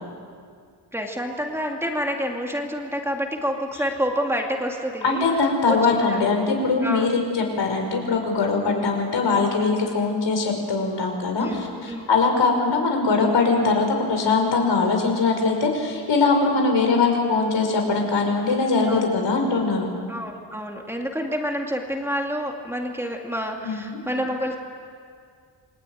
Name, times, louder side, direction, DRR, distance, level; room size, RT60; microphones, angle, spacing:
voice 1, 0.9-5.2 5.7-6.2 6.8-7.1 11.4-12.1 18.9-19.1 20.1-24.6, equal, 5° right, 1 dB, 2.4 m, -28 dB
voice 2, 5.0-19.9 23.6-24.0, left 4 dB, 85° left, 2 dB, 5.7 m, -21 dB
28.5 x 22.5 x 9.3 m, 2.1 s
wide cardioid pair, 175°, 42 cm